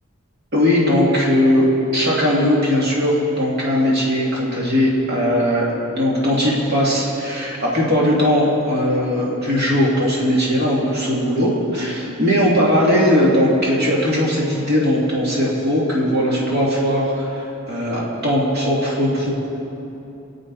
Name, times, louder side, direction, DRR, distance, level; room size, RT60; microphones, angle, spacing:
voice 1, 0.5-1.6 1.9-5.7 5.9-19.3, equal, 50° right, -5 dB, 2.5 m, -19 dB
24.0 x 8.1 x 4.1 m, 2.9 s
head